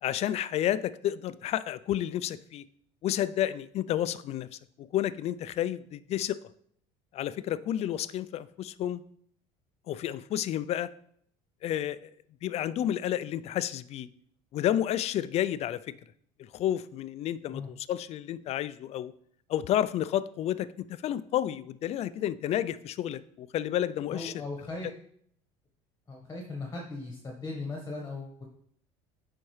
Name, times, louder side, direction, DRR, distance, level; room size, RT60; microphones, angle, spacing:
voice 1, 0.0-2.6 3.0-4.5 4.8-6.4 7.1-9.0 9.9-10.9 11.6-12.1 12.4-14.1 14.5-15.8 16.4-19.1 19.5-20.7 21.0-24.3, left 11 dB, 45° left, 16 dB, 0.4 m, -30 dB
voice 2, 24.1-24.9 26.1-28.4, left 3 dB, 20° left, 1 dB, 1.2 m, -38 dB
9.3 x 4.2 x 3.2 m, 0.66 s
supercardioid pair, 100°, 15 cm